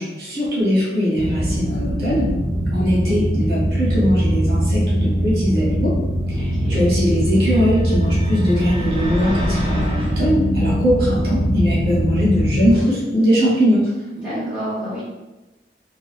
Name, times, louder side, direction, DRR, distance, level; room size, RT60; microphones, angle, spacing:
voice 1, 0.0-2.3 2.7-6.0 6.3-14.5, equal, 60° right, -6 dB, 1.0 m, -21 dB
sound 1, 1.2-12.8, equal, 90° right, 0.5 m, -21 dB
voice 2, 6.3-6.8 14.2-15.0, equal, 5° right, -12 dB, 1.0 m, -29 dB
sound 2, 7.3-10.2, equal, 30° right, 0.4 m, -28 dB
2.9 x 2.3 x 2.4 m, 1.1 s
head